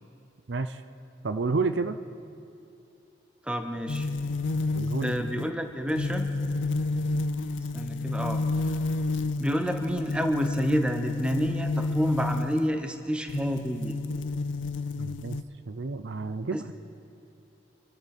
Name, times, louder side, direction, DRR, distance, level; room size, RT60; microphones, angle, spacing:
voice 1, 0.5-0.8 1.2-2.0 4.7-5.1 15.0-15.4 15.7-16.7, right 3 dB, 75° right, 10 dB, 0.6 m, -30 dB
voice 2, 3.4-4.1 5.0-6.3 7.7-8.4 9.4-13.9 16.5-16.7, equal, 5° right, 5 dB, 0.9 m, -29 dB
sound 1, 3.9-12.7 13.3-15.4, left 3 dB, 90° left, 0.6 m, -30 dB
27.0 x 12.0 x 4.3 m, 2.7 s
head